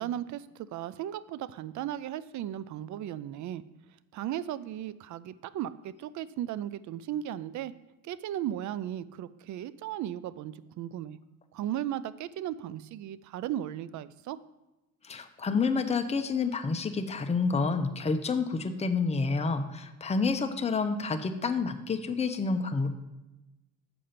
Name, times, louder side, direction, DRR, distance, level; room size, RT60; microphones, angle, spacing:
voice 1, 0.0-3.6 4.1-7.7 8.0-11.2 11.5-14.4, right 11 dB, 40° right, 17 dB, 0.4 m, -36 dB
voice 2, 15.0-22.9, left 4 dB, 15° left, 6 dB, 0.7 m, -29 dB
6.9 x 4.9 x 5.7 m, 1.0 s
hypercardioid pair, 70°, 46 cm